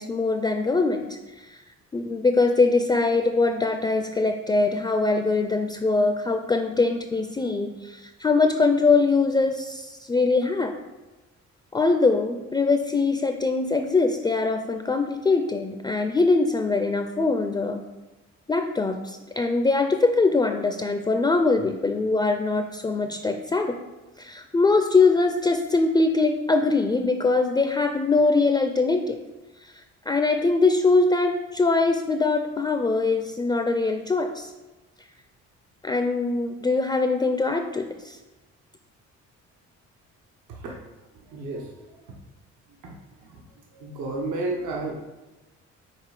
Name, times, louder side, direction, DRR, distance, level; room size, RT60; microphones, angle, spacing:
voice 1, 0.0-1.6 1.9-10.7 11.7-17.8 18.5-23.8 24.2-29.2 29.6-29.7 30.1-34.5 35.8-38.2, left 3 dB, 15° left, 6 dB, 0.4 m, -22 dB
voice 2, 41.3-42.1 42.8-43.0 43.2-43.4 43.7-44.9, right 2 dB, 80° right, -1 dB, 1.1 m, -32 dB
5.8 x 4.1 x 4.8 m, 1.1 s
cardioid pair, 90°, 30 cm